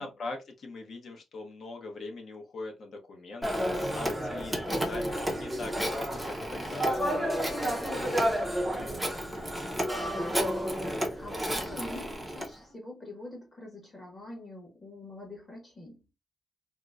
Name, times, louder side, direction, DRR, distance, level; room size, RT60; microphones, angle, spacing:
voice 1, 0.0-7.7, left 3 dB, 50° left, 0.9 m, -42 dB
Telephone, 3.4-12.5, equal, ahead, 0.6 m, -31 dB
voice 2, 8.6-16.0, left 1 dB, 20° left, 1.2 m, -46 dB
4.0 x 2.1 x 2.3 m
wide cardioid pair, 165°, 0 cm